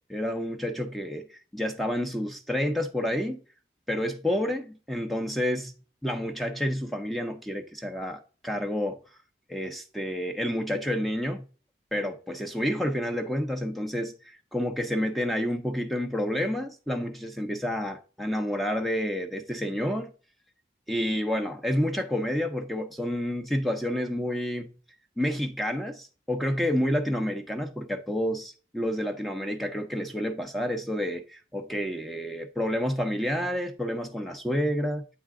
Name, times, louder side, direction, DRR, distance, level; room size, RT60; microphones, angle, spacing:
voice 1, 0.1-3.4 3.9-5.7 6.0-9.0 9.5-11.4 11.9-20.1 20.9-24.7 25.2-35.0, equal, ahead, 0.6 m, -29 dB
8.3 x 3.6 x 3.5 m
head